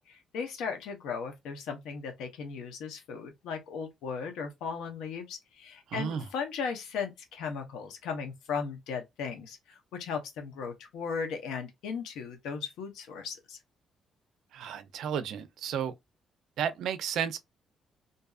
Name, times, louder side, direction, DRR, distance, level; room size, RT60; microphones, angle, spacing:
voice 1, 0.0-13.6, left 6 dB, 90° left, 0.7 m, -37 dB
voice 2, 5.9-6.2 14.5-15.9 16.6-17.4, right 8 dB, 80° right, 0.4 m, -32 dB
2.6 x 2.3 x 2.3 m
cardioid pair, 90°, 0 cm